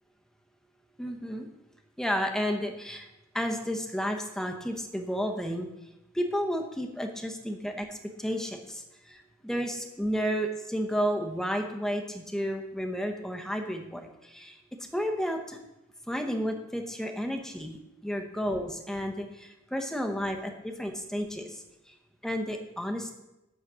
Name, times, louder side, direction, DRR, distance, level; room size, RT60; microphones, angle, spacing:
voice 1, 1.0-1.5 2.0-3.1 3.3-5.7 6.1-14.6 14.9-15.6 16.1-21.9 22.2-23.1, equal, 5° left, 3 dB, 1.0 m, -32 dB
12.0 x 4.1 x 6.1 m, 0.94 s
head